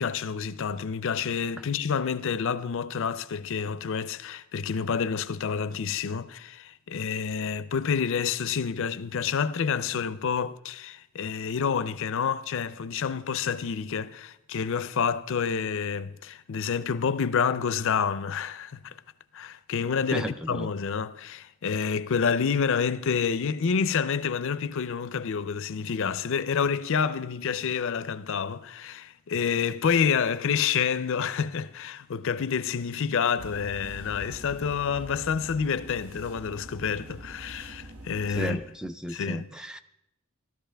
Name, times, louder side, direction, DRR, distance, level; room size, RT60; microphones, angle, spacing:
voice 1, 0.0-19.0 19.3-38.6 39.1-39.5, left 6 dB, 65° left, 0.5 m, -28 dB
voice 2, 20.1-20.7 38.4-39.8, right 1 dB, 5° right, 0.3 m, -33 dB
sound 1, 33.4-38.6, right 1 dB, 75° right, 1.3 m, -44 dB
16.0 x 12.0 x 3.4 m
head